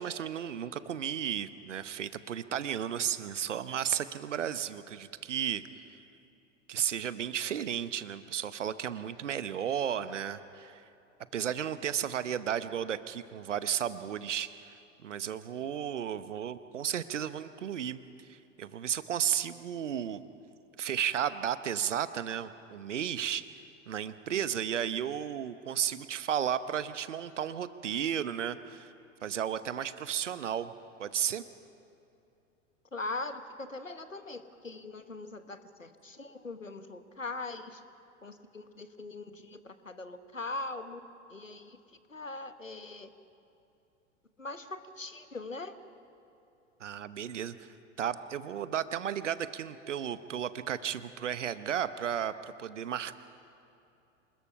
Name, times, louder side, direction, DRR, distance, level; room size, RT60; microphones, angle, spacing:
voice 1, 0.0-5.6 5.9-6.0 6.7-10.8 11.3-14.8 15.0-18.0 18.3-20.2 20.8-28.9 29.2-30.7 31.0-31.4 46.8-52.3 52.6-53.1, right 9 dB, 70° right, 14 dB, 0.9 m, -34 dB
voice 2, 32.9-37.8 38.2-41.0 41.3-41.8 42.1-43.1 44.4-45.7, left 3 dB, 90° left, 11 dB, 1.1 m, -41 dB
26.0 x 20.5 x 5.7 m, 2.7 s
figure-of-eight pair, 90°, 38 cm